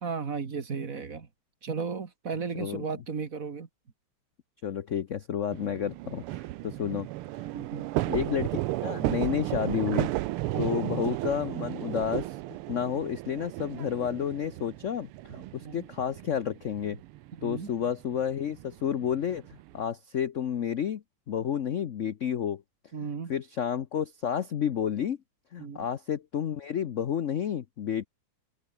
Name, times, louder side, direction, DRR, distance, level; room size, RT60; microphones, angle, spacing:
voice 1, 0.0-1.3 1.6-3.7 7.5-7.9 10.5-10.8 15.6-15.9 17.4-17.7 22.9-23.3 25.6-25.8, right 5 dB, 40° right, 2.0 m, -35 dB
voice 2, 2.5-2.8 4.6-7.1 8.1-10.1 10.6-12.4 12.7-17.0 17.4-22.6 23.3-25.2 25.5-28.1, left 8 dB, 70° left, 0.7 m, -31 dB
sound 1, 5.5-19.8, right 17 dB, 85° right, 1.6 m, -34 dB
open air
omnidirectional pair, 2.4 m